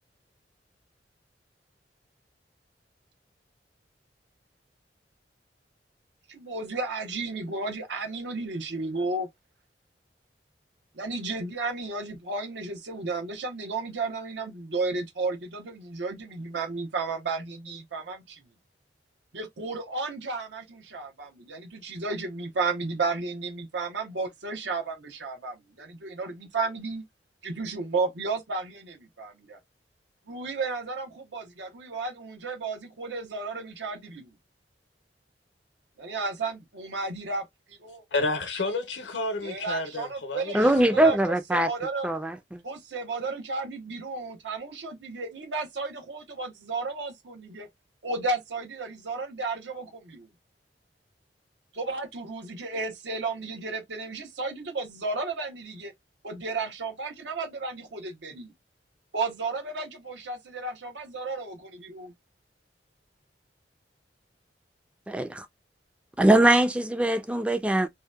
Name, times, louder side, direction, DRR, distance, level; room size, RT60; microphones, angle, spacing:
voice 1, 6.3-9.3 10.9-18.4 19.3-27.0 27.4-29.6 30.3-34.3 36.0-38.0 39.4-42.1 42.6-47.7 48.0-50.3 51.7-55.9 56.2-58.5 59.1-62.1, right 3 dB, 85° right, 0.8 m, -33 dB
voice 2, 38.1-41.0, left 2 dB, 85° left, 0.7 m, -31 dB
voice 3, 40.5-41.7 42.0-42.6 65.1-65.5 66.2-67.9, right 1 dB, 5° right, 0.3 m, -22 dB
2.7 x 2.1 x 2.2 m
head